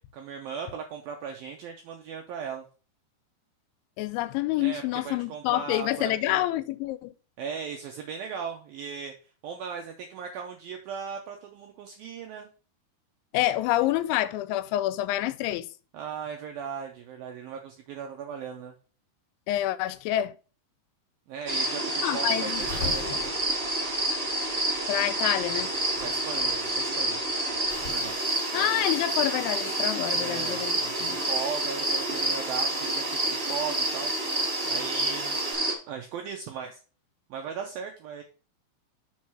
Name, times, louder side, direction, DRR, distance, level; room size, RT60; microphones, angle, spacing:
voice 1, 0.1-2.6 4.6-6.4 7.4-9.1 9.4-12.5 15.9-18.7 21.3-23.3 26.0-27.2 27.8-28.2 30.1-34.1 34.7-35.4 35.9-36.8 37.3-38.2, right 6 dB, 85° right, 2.1 m, -37 dB
voice 2, 4.0-7.1 13.3-15.7 19.5-20.3 22.0-22.6 24.9-25.7 28.5-30.7 31.0-31.2, left 15 dB, 90° left, 2.9 m, -27 dB
sound 1, 21.5-35.7, right 1 dB, 20° right, 1.7 m, -28 dB
sound 2, 22.5-28.1, left 4 dB, 35° left, 2.0 m, -42 dB
Hiss, 27.7-35.5, right 4 dB, 70° right, 1.1 m, -45 dB
6.5 x 4.7 x 5.9 m
omnidirectional pair, 5.3 m